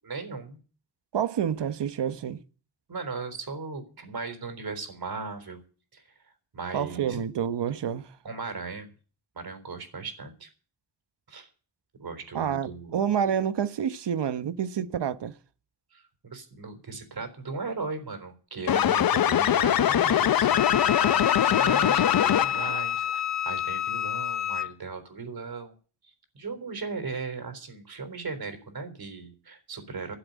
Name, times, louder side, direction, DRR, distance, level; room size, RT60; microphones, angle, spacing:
voice 1, 0.0-0.6 2.9-5.6 5.9-7.2 8.2-8.9 9.3-10.5 11.3-11.5 12.0-13.0 13.2-13.3 15.9-25.7 26.0-30.2, right 4 dB, 60° right, 4.0 m, -37 dB
voice 2, 1.1-2.4 6.7-8.2 12.3-15.3, right 8 dB, 75° right, 1.1 m, -28 dB
sound 1, 18.7-22.8, left 10 dB, 55° left, 0.6 m, -22 dB
Wind instrument woodwind instrument, 20.5-24.7, left 9 dB, 40° left, 1.1 m, -29 dB
13.0 x 7.8 x 9.4 m
cardioid pair, 85°, 42 cm